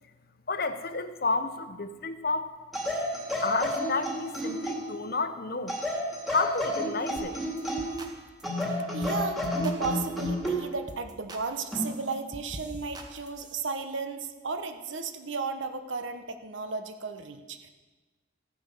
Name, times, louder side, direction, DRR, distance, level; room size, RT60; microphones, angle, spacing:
voice 1, 0.5-2.5 3.4-5.8 6.3-7.4, left 3 dB, 50° left, 10 dB, 0.8 m, -31 dB
sound 1, 2.7-5.0 5.7-8.0 8.4-10.6 11.7-12.0, equal, ahead, 2.3 m, -31 dB
sound 2, 7.2-7.3 7.6-8.1 8.4-8.6 9.0-9.2 9.4-10.5 10.9-11.4 11.7-13.7, right 1 dB, 20° right, 1.2 m, -44 dB
voice 2, 8.6-17.7, right 4 dB, 75° right, 7 dB, 1.0 m, -34 dB
14.5 x 9.8 x 6.6 m, 1.3 s
head